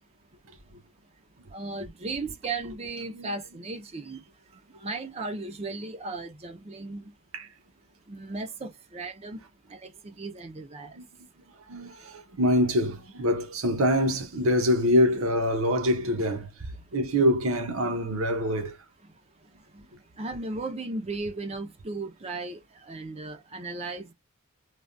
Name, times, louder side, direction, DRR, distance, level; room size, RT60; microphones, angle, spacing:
voice 1, 1.5-4.2 4.7-7.1 8.1-9.4 9.7-10.9 19.7-19.8 20.2-22.6 22.9-24.1, right 3 dB, 30° right, 0.5 m, -36 dB
voice 2, 11.7-16.5 16.9-18.8, equal, 70° right, 0.8 m, -25 dB
3.3 x 2.2 x 2.5 m
head